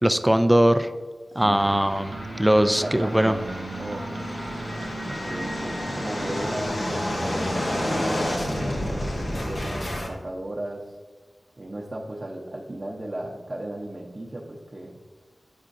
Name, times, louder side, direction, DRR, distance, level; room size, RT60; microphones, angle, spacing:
voice 1, 0.0-0.9 1.4-3.3, right 1 dB, 10° right, 10 dB, 0.4 m, -20 dB
voice 2, 1.3-1.8 2.5-3.5 3.8-4.1 5.0-11.0 11.6-15.0, right 1 dB, 45° right, -3 dB, 0.7 m, -36 dB
sound 1, 1.4-8.6, right 3 dB, 85° right, 0.5 m, -38 dB
sound 2, 1.5-10.1, left 1 dB, 70° left, 1.1 m, -30 dB
9.7 x 4.3 x 2.6 m, 1.4 s
wide cardioid pair, 50°, 0 cm